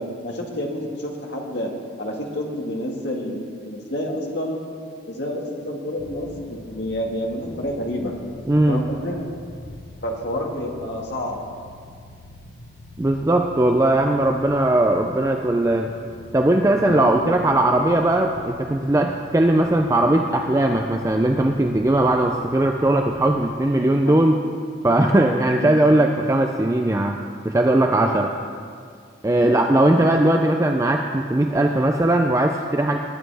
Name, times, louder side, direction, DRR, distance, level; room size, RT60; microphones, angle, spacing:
voice 1, 0.0-1.7 2.0-3.4 3.6-4.6 5.1-8.1 8.7-9.2 10.0-11.4 16.9-17.3 24.0-24.2 25.6-25.7 29.4-29.6, left 1 dB, 65° left, 0 dB, 1.7 m, -28 dB
sound 1, 6.0-23.3, left 1 dB, 85° left, 0.9 m, -44 dB
voice 2, 8.5-8.8 13.0-15.9 16.3-24.4 24.8-28.3 29.2-33.0, right 1 dB, 15° right, 3 dB, 0.4 m, -19 dB
20.0 x 9.8 x 3.4 m, 2.2 s
head